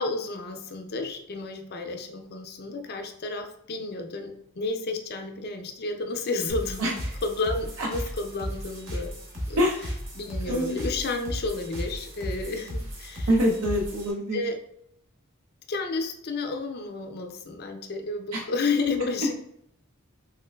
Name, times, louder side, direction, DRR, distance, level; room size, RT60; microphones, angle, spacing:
voice 1, 0.0-6.9 7.2-9.1 9.5-9.7 10.1-13.3 14.3-14.6 15.7-19.3, left 3 dB, 45° left, 5 dB, 0.5 m, -31 dB
sound 1, 6.5-14.1, equal, 60° right, 1.0 m, -35 dB
voice 2, 10.5-10.8 13.3-14.4 18.3-18.4, equal, 80° right, -1 dB, 0.5 m, -25 dB
3.6 x 3.1 x 2.2 m, 0.74 s
head